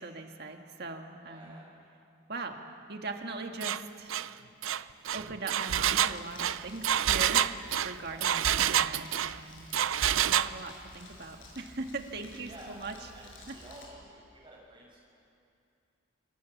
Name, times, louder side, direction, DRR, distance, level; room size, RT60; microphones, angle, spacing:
voice 1, 0.0-1.6 2.3-2.6 2.9-4.2 5.1-9.7 10.0-12.9 13.5-13.6, right 3 dB, 55° right, 4 dB, 1.8 m, -40 dB
voice 2, 1.2-1.7 8.1-8.4 12.4-15.0, right 1 dB, 25° right, -3 dB, 7.7 m, -51 dB
Engine, 3.6-3.8 4.1-4.3 4.6-9.3 9.7-10.5, right 10 dB, 80° right, 0.6 m, -27 dB
Crumpling crinkling, 5.7-13.8, left 2 dB, 75° left, 6.6 m, -53 dB
27.0 x 25.5 x 7.3 m, 2.6 s
head